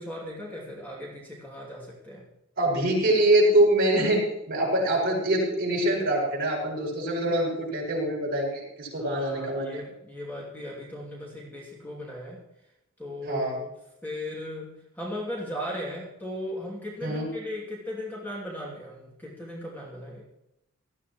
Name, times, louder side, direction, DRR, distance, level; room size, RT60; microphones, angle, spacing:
voice 1, 0.0-2.3 9.0-12.4 13.0-13.7 14.0-20.2, left 1 dB, 10° left, -4 dB, 2.8 m, -37 dB
voice 2, 2.6-9.8 13.3-13.6 17.0-17.3, right 1 dB, 45° right, -4 dB, 6.6 m, -24 dB
19.0 x 14.0 x 3.1 m, 0.85 s
head